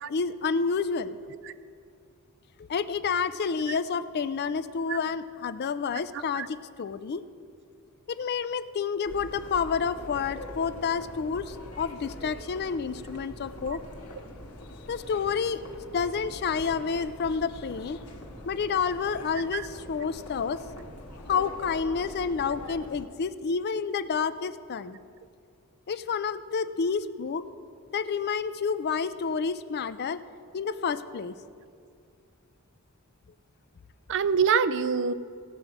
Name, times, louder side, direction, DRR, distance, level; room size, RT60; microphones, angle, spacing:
voice 1, 0.1-1.2 2.6-7.2 8.1-13.8 14.9-15.6 15.9-18.0 18.5-20.6 21.3-25.0 25.9-27.4 27.9-30.2 30.5-31.3, left 5 dB, 50° left, 13 dB, 0.4 m, -29 dB
sound 1, 9.0-23.0, left 1 dB, 85° left, 1.5 m, -44 dB
voice 2, 34.1-35.1, right 6 dB, 55° right, 13 dB, 0.4 m, -25 dB
17.5 x 6.4 x 4.8 m, 2.3 s
head